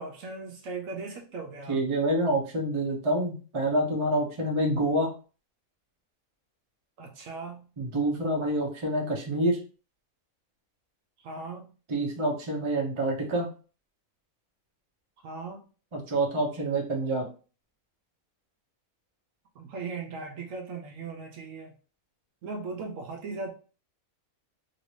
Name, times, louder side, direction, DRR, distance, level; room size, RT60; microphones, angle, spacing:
voice 1, 0.0-1.8 7.0-7.7 11.2-11.7 15.2-15.7 19.5-21.7 22.4-23.5, right 4 dB, 70° right, 0.9 m, -38 dB
voice 2, 1.7-5.1 7.8-9.6 11.9-13.5 15.9-17.2, right 1 dB, 30° right, 0.6 m, -27 dB
2.9 x 2.7 x 3.1 m
omnidirectional pair, 1.5 m